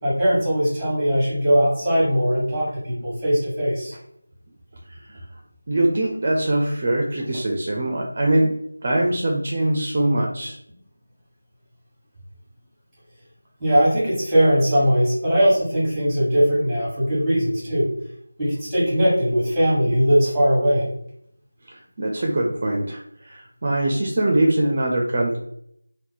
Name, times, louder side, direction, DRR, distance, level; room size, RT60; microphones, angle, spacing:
voice 1, 0.0-4.0 13.6-17.9 18.4-20.9, equal, 5° right, -7 dB, 1.4 m, -20 dB
voice 2, 4.9-5.2 5.7-8.6 8.8-10.6 21.7-25.4, right 1 dB, 35° right, 0 dB, 0.5 m, -22 dB
2.9 x 2.2 x 3.8 m, 0.73 s
figure-of-eight pair, 170°, 0 cm